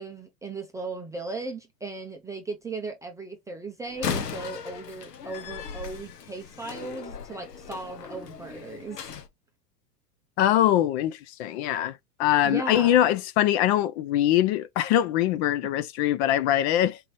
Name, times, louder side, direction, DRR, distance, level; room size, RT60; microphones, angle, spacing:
voice 1, 0.0-9.1 12.4-13.0, right 3 dB, 5° right, 0.4 m, -37 dB
Slam, 3.9-9.3, left 7 dB, 85° left, 1.1 m, -37 dB
voice 2, 10.4-17.0, left 12 dB, 45° left, 0.6 m, -23 dB
4.4 x 3.8 x 3.2 m
hypercardioid pair, 115°, 47 cm